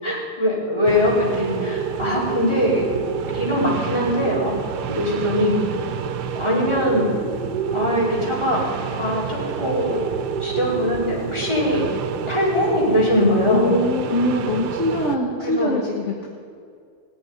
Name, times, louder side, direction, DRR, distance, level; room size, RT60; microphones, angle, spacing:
voice 1, 0.0-3.0 3.3-4.5 4.9-5.6 6.3-7.1 7.7-8.6 9.0-10.0 10.4-11.9 12.3-13.7 15.4-15.7, left 1 dB, 15° left, -6 dB, 4.4 m, -21 dB
sound 1, 0.9-15.2, right 7 dB, 85° right, 1.4 m, -28 dB
voice 2, 13.5-16.3, left 1 dB, 50° left, 0 dB, 1.5 m, -23 dB
18.0 x 6.3 x 9.8 m, 2.3 s
omnidirectional pair, 1.7 m